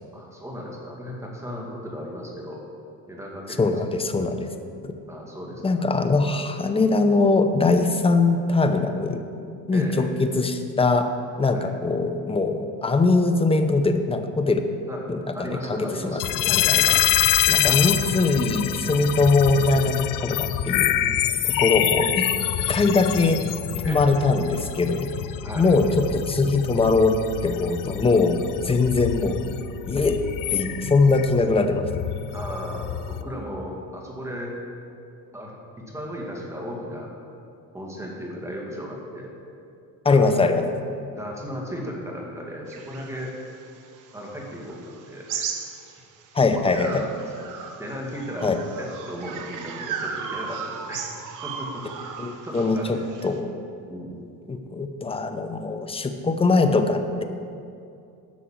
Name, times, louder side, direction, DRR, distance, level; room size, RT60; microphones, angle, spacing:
voice 1, 0.1-2.6 3.1-3.9 4.2-4.4 5.1-5.8 9.7-10.1 11.5-11.7 14.9-15.0 15.3-17.3 17.6-17.9 19.7-19.9 20.9-21.2 23.8-24.1 25.4-25.7 32.3-34.6 35.3-37.1 37.7-39.3 40.1-40.6 41.1-43.4 44.1-44.8 45.1-45.6 46.5-51.1 51.4-52.1 52.4-52.9 53.9-54.2, equal, 10° right, -2 dB, 2.1 m, -36 dB
voice 2, 3.6-4.5 4.8-4.9 5.6-9.2 9.7-11.1 11.4-14.6 15.1-16.2 16.5-17.0 17.5-20.9 21.6-22.3 22.7-23.4 23.9-25.1 25.6-27.2 27.4-28.4 28.6-29.4 29.9-30.2 30.5-31.8 40.0-40.6 46.3-47.1 48.4-48.6 52.2-53.5 54.5-57.2, left 3 dB, 15° left, 7 dB, 0.7 m, -21 dB
sound 1, 16.2-33.2, left 11 dB, 60° left, 0.6 m, -26 dB
sound 2, 42.7-46.3 46.7-53.4, right 6 dB, 60° right, 1.2 m, -36 dB
11.5 x 6.4 x 7.4 m, 2.5 s
cardioid pair, 125°, 36 cm